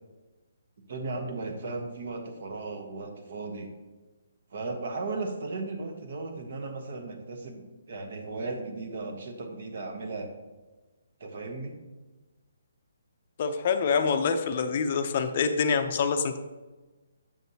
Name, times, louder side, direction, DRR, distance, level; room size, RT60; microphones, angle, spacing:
voice 1, 0.9-3.7 4.5-7.6 7.9-10.3 11.2-11.8, right 3 dB, 55° right, 4 dB, 1.1 m, -36 dB
voice 2, 13.4-16.4, left 5 dB, 40° left, 8 dB, 0.5 m, -26 dB
7.4 x 6.1 x 2.7 m, 1.2 s
hypercardioid pair, 165°, 0 cm